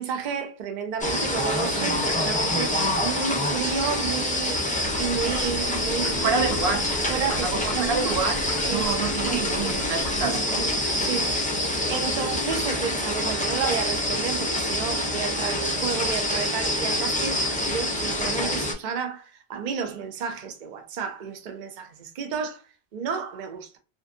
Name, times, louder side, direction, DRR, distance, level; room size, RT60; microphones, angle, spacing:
voice 1, 0.0-6.3 7.1-8.2 8.7-8.9 9.2-9.8 10.2-22.6 22.9-23.8, right 6 dB, 55° right, 0.6 m, -32 dB
sound 1, 1.0-18.7, left 1 dB, 10° left, 0.3 m, -26 dB
sound 2, 4.8-10.2, left 3 dB, 60° left, 0.6 m, -38 dB
voice 2, 6.2-6.9 7.3-10.6, right 5 dB, 85° right, 0.9 m, -28 dB
2.5 x 2.3 x 2.5 m
omnidirectional pair, 1.0 m